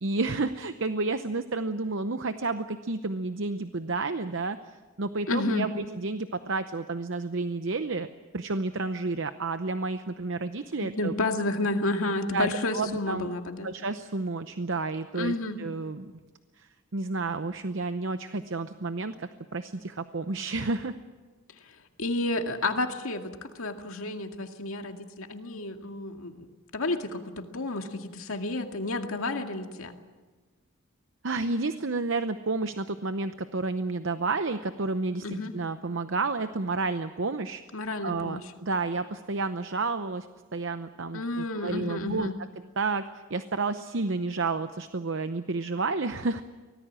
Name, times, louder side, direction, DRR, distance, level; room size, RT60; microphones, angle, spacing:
voice 1, 0.0-8.1 8.3-11.1 12.3-13.3 13.6-16.1 16.6-21.0 31.2-37.6 38.0-40.3 40.5-42.3 42.8-46.4, right 3 dB, 60° right, 10 dB, 0.8 m, -31 dB
voice 2, 5.3-5.7 10.8-13.7 15.2-15.6 22.0-26.5 26.7-29.9 35.2-35.5 37.7-38.4 41.1-42.3, left 2 dB, 75° left, 5 dB, 2.2 m, -31 dB
24.5 x 18.5 x 7.6 m, 1.4 s
head